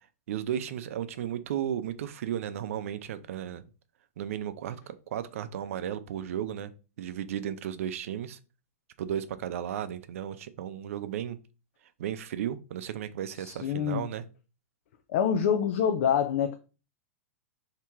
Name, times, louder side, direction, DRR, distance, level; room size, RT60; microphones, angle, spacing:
voice 1, 0.3-3.6 4.2-6.7 7.0-8.4 9.0-11.4 12.0-14.2, right 10 dB, 65° right, 0.5 m, -34 dB
voice 2, 13.3-14.1 15.1-16.5, left 8 dB, 55° left, 0.5 m, -26 dB
3.5 x 2.9 x 4.5 m
supercardioid pair, 160°, 8 cm